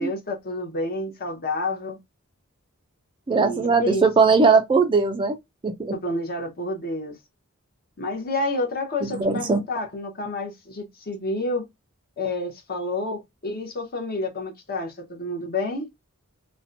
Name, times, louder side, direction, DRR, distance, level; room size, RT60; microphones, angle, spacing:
voice 1, 0.0-2.0 3.3-4.0 5.9-7.2 8.0-11.7 12.2-15.9, left 2 dB, 45° left, 0.8 m, -29 dB
voice 2, 3.3-5.4 5.6-5.9 9.0-9.6, right 4 dB, 25° right, 0.3 m, -19 dB
2.5 x 2.1 x 2.5 m
head